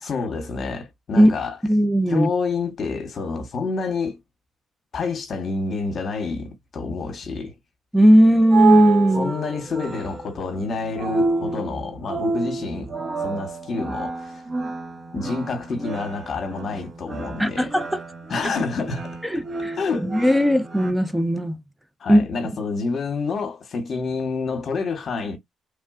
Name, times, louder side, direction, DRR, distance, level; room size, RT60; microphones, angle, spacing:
voice 1, 0.0-1.6 2.1-4.2 4.9-7.5 9.2-14.4 15.1-17.7 18.3-19.2 19.8-20.1 22.0-25.4, left 4 dB, 50° left, 1.0 m, -28 dB
voice 2, 1.7-2.3 7.9-9.3 17.4-18.0 19.2-21.6 22.1-22.2, equal, 5° right, 0.5 m, -17 dB
Robot Chant Loop, 8.0-20.9, right 4 dB, 35° right, 0.9 m, -29 dB
3.4 x 2.2 x 2.3 m
cardioid pair, 90°, 0 cm